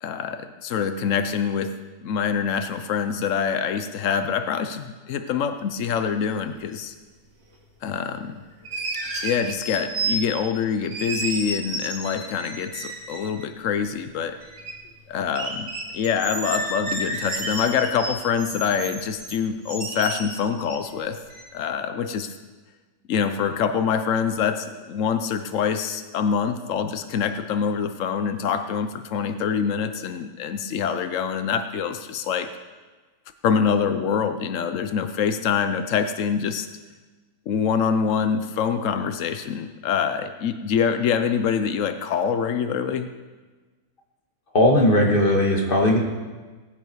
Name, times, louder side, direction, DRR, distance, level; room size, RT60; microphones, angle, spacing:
voice 1, 0.0-1.7 2.0-6.9 7.8-8.4 9.2-14.4 15.1-21.2 21.5-22.3 23.1-32.5 33.4-36.7 37.5-43.1, left 7 dB, 85° left, 9 dB, 0.7 m, -25 dB
sound 1, 6.5-6.6 8.6-10.5 10.8-13.4 14.0-14.7 15.0-15.1 15.3-20.9 21.3-21.4, right 2 dB, 60° right, 3.0 m, -31 dB
voice 2, 44.5-46.0, left 1 dB, 25° left, 0 dB, 2.0 m, -18 dB
18.0 x 9.9 x 4.7 m, 1.3 s
omnidirectional pair, 2.2 m